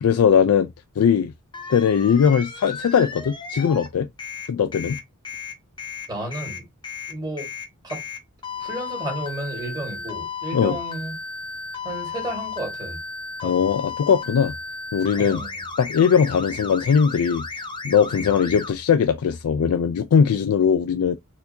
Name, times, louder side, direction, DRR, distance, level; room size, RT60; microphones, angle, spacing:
voice 1, 0.0-0.7 1.0-1.3 1.7-4.1 4.5-5.0 10.5-10.8 13.4-14.5 14.9-15.4 15.8-17.4 17.8-21.2, left 7 dB, 75° left, 0.4 m, -19 dB
sound 1, 1.5-3.9 4.2-18.7, left 4 dB, 20° left, 0.6 m, -34 dB
voice 2, 6.1-6.7 7.1-7.5 7.8-8.0 8.6-11.1 11.8-13.0 13.4-13.7 15.2-15.6 18.1-18.3, right 1 dB, 20° right, 1.9 m, -32 dB
4.3 x 2.7 x 2.8 m
head